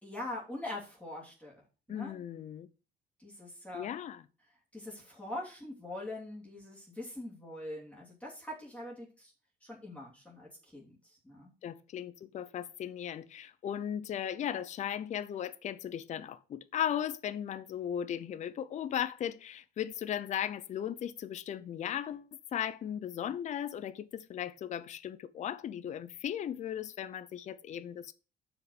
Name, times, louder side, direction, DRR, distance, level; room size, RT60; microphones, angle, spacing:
voice 1, 0.0-1.6 1.9-2.2 3.2-3.9 4.7-9.3 9.6-11.5, left 1 dB, 10° left, 2.8 m, -43 dB
voice 2, 1.9-2.7 3.7-4.2 11.6-28.1, left 10 dB, 45° left, 0.6 m, -37 dB
6.4 x 5.1 x 6.6 m
cardioid pair, 110°, 17 cm